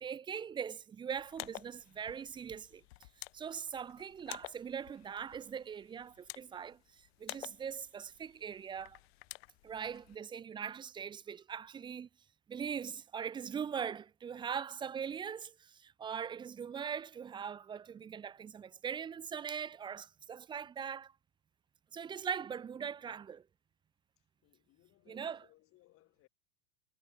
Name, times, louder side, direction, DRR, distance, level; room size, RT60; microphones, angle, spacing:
voice 1, 0.0-2.8 3.3-9.0 9.6-12.1 12.5-21.1 21.9-23.4 25.1-25.4, right 7 dB, 15° right, 0.5 m, -41 dB
sound 1, 1.2-10.2, left 21 dB, 65° left, 0.7 m, -51 dB
voice 2, 24.2-26.3, left 18 dB, 40° left, 4.3 m, -66 dB
supercardioid pair, 130°, 34 cm